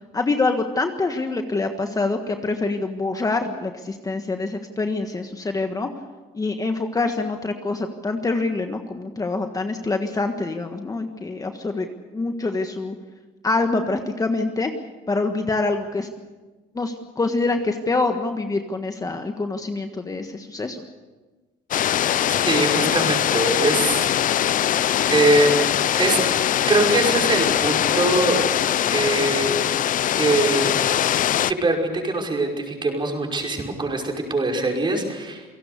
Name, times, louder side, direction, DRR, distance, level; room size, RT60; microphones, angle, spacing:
voice 1, 0.1-5.9 6.3-11.9 12.1-12.9 13.4-14.7 15.1-16.1 16.7-20.8, left 3 dB, 20° left, 5 dB, 1.5 m, -25 dB
sound 1, 21.7-31.5, left 11 dB, 50° left, 0.7 m, -21 dB
voice 2, 22.3-24.8 25.1-25.6 26.0-26.3 26.7-28.4 28.9-29.5 30.2-30.7 31.5-35.5, right 2 dB, 30° right, 1 dB, 5.6 m, -22 dB
28.5 x 17.5 x 6.8 m, 1.2 s
cardioid pair, 110°, 17 cm